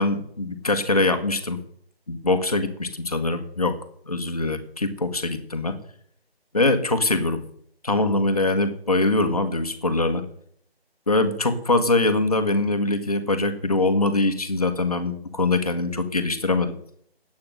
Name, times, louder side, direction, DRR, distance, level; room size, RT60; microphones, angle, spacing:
voice 1, 0.0-1.6 2.1-3.8 4.1-5.8 6.5-7.4 7.8-10.2 11.1-16.7, left 2 dB, 35° left, 8 dB, 1.3 m, -23 dB
9.8 x 8.6 x 7.5 m, 0.65 s
figure-of-eight pair, 170°, 31 cm